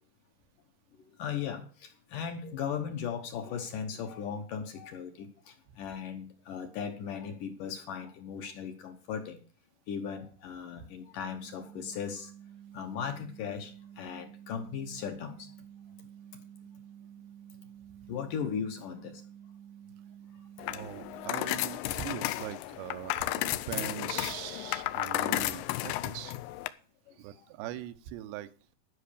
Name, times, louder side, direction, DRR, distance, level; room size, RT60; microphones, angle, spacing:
voice 1, 0.9-9.4 9.9-12.3 12.7-15.5 16.0-16.1 16.3-16.4 18.1-19.2 27.1-27.5, left 7 dB, 65° left, 6 dB, 2.2 m, -38 dB
sound 1, 11.3-21.3, right 10 dB, 45° right, 1.1 m, -51 dB
sound 2, 20.6-26.7, left 15 dB, 85° left, 2.0 m, -33 dB
voice 2, 20.7-26.4 27.2-28.8, right 12 dB, 85° right, 11 dB, 3.0 m, -41 dB
13.0 x 5.8 x 6.8 m, 0.40 s
omnidirectional pair, 4.8 m